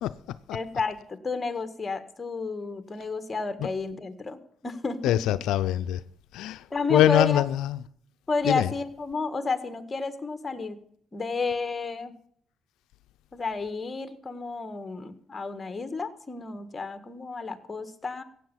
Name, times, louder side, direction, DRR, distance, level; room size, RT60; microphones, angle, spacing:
voice 1, 0.5-5.2 6.7-7.4 8.3-10.8 11.1-12.1 13.3-18.2, left 4 dB, 25° left, 1.7 m, -31 dB
voice 2, 5.0-6.0 6.3-7.8 8.4-8.7, left 13 dB, 90° left, 0.5 m, -24 dB
15.5 x 8.4 x 7.3 m
cardioid pair, 90°, 0 cm